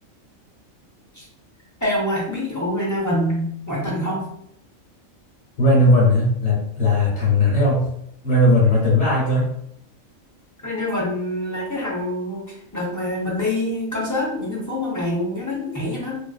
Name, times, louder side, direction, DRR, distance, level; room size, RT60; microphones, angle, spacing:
voice 1, 1.8-4.3 10.6-12.4 12.7-16.1, left 1 dB, 25° left, -6 dB, 0.4 m, -25 dB
voice 2, 5.6-7.9 8.2-9.5, left 1 dB, 65° left, -6 dB, 1.1 m, -17 dB
2.5 x 2.4 x 2.3 m, 0.71 s
omnidirectional pair, 1.4 m